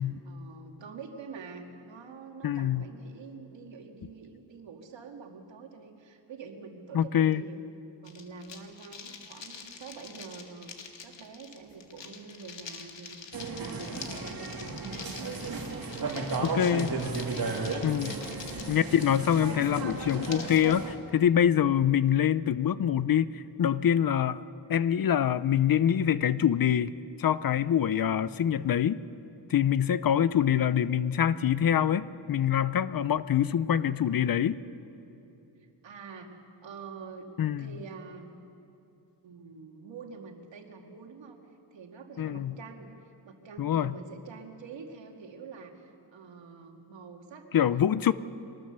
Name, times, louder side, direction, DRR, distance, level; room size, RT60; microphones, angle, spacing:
voice 1, 0.0-7.6 8.0-10.7 11.0-14.9 15.8-17.0 17.5-17.8 18.2-18.3 35.6-36.4 36.6-37.3 37.6-38.4 39.2-41.4 41.7-48.1, right 5 dB, 90° right, 3 dB, 2.3 m, -46 dB
voice 2, 2.4-2.8 6.9-7.4 16.5-16.9 17.8-18.1 18.7-24.4 24.7-26.9 27.2-29.0 29.5-34.6 37.4-37.7 42.2-42.6 43.6-43.9 47.5-48.1, left 9 dB, 55° left, 16 dB, 0.6 m, -25 dB
sound 1, 8.0-20.7, left 6 dB, 85° left, 1.8 m, -46 dB
sound 2, 13.3-20.9, right 3 dB, 55° right, 2.5 m, -34 dB
24.0 x 19.5 x 6.8 m, 2.8 s
wide cardioid pair, 110°, 43 cm